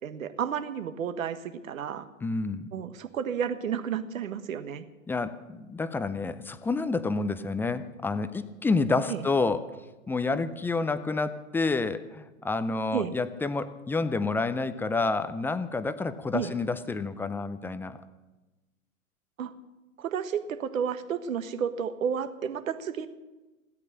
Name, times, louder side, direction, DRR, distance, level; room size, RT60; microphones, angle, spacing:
voice 1, 0.0-2.1 2.7-4.9 9.1-9.2 12.9-13.1 16.3-16.5 19.4-19.5 20.0-23.1, right 8 dB, 70° right, 11 dB, 1.5 m, -31 dB
voice 2, 2.2-2.7 5.1-9.7 10.1-18.0, left 3 dB, 5° left, 12 dB, 0.5 m, -29 dB
16.0 x 12.5 x 6.8 m, 1.1 s
hypercardioid pair, 110°, 42 cm